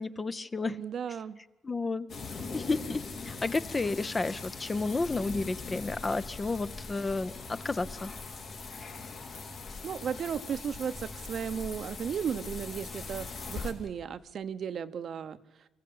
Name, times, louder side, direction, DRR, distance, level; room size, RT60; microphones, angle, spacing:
voice 1, 0.0-0.8 1.6-2.1 2.5-8.1, left 3 dB, 25° left, 13 dB, 0.7 m, -32 dB
voice 2, 0.7-1.4 9.8-15.4, right 7 dB, 60° right, 12 dB, 0.8 m, -35 dB
sound 1, 2.1-13.7, left 4 dB, 65° left, 3.3 m, -41 dB
24.5 x 15.0 x 8.7 m, 1.1 s
cardioid pair, 90°, 0 cm